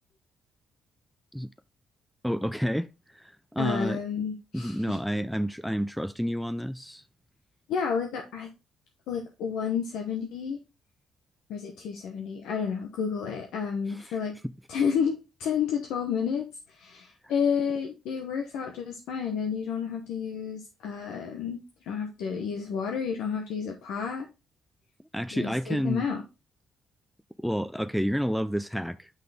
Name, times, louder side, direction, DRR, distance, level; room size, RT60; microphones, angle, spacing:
voice 1, 2.2-2.9 3.1-4.0 4.5-7.0 13.9-14.1 14.4-14.5 25.1-26.1 27.4-29.1, equal, ahead, 0.3 m, -29 dB
voice 2, 3.6-5.0 7.7-8.5 9.1-10.6 11.5-14.3 14.7-24.3 25.3-26.2, left 6 dB, 90° left, 0.9 m, -31 dB
5.9 x 5.8 x 3.4 m
cardioid pair, 90°, 0 cm